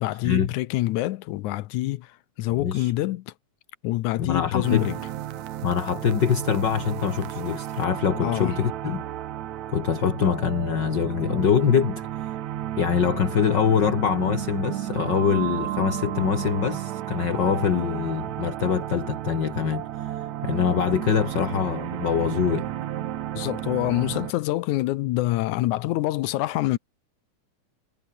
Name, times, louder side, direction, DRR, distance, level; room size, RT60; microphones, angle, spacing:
voice 1, 0.0-3.3 3.8-5.0 8.2-8.6 23.3-26.8, left 16 dB, 80° left, 2.1 m, -26 dB
voice 2, 2.6-2.9 4.2-4.9 5.6-9.0 9.7-12.0 12.8-20.1 20.4-22.7, left 7 dB, 45° left, 1.9 m, -24 dB
sound 1, 4.6-24.3, right 12 dB, 70° right, 2.4 m, -33 dB
omnidirectional pair, 3.6 m